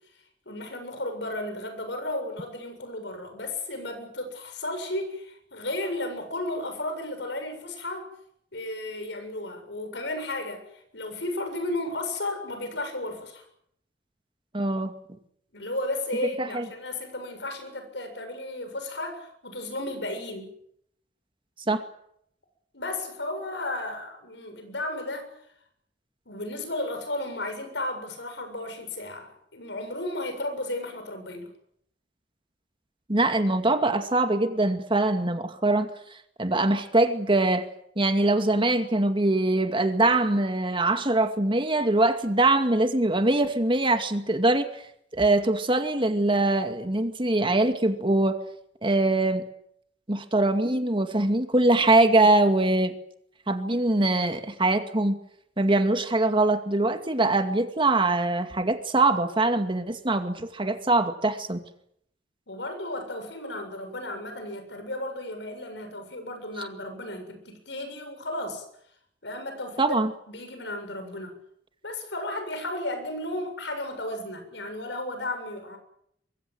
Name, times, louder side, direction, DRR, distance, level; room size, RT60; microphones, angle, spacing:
voice 1, 0.5-8.1 8.5-13.4 15.5-20.5 22.7-25.3 26.3-31.5 62.5-68.7 69.2-70.0 70.3-71.3 71.8-75.8, left 1 dB, 75° left, 7 dB, 7.4 m, -34 dB
voice 2, 14.5-14.9 16.4-16.6 21.7-21.8 33.1-35.9 36.4-37.7 38.0-44.7 45.1-48.4 48.8-49.4 50.1-52.9 53.5-55.1 55.6-61.6 69.8-70.1, right 2 dB, 30° right, 7 dB, 2.3 m, -23 dB
24.0 x 23.5 x 7.9 m, 0.71 s
head